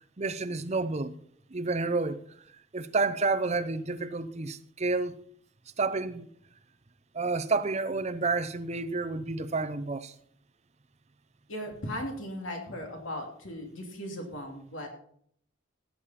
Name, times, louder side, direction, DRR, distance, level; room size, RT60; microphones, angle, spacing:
voice 1, 0.2-1.1 1.5-2.2 2.7-5.2 5.8-6.3 7.1-10.1, right 3 dB, 35° right, 0.7 m, -30 dB
voice 2, 11.5-14.9, equal, 70° left, 2.8 m, -37 dB
16.0 x 8.7 x 4.2 m
head